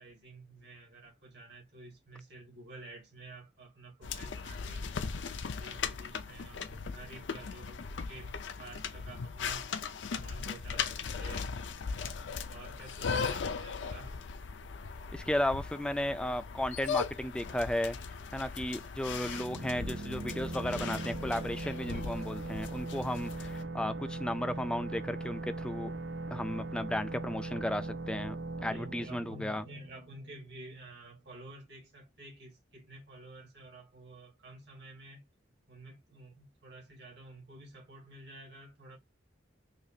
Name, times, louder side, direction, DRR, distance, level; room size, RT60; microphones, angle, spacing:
voice 1, 0.0-4.9 5.5-9.7 10.0-11.5 12.5-14.2 28.6-35.2 35.7-39.0, right 2 dB, 60° right, 1.6 m, -51 dB
sound 1, 4.0-23.6, left 5 dB, 70° left, 0.5 m, -38 dB
voice 2, 15.1-18.0 18.3-25.9 26.3-28.4 28.6-29.6, left 1 dB, 5° left, 0.3 m, -34 dB
sound 2, 19.1-30.6, right 2 dB, 85° right, 0.8 m, -40 dB
5.0 x 2.4 x 2.7 m
head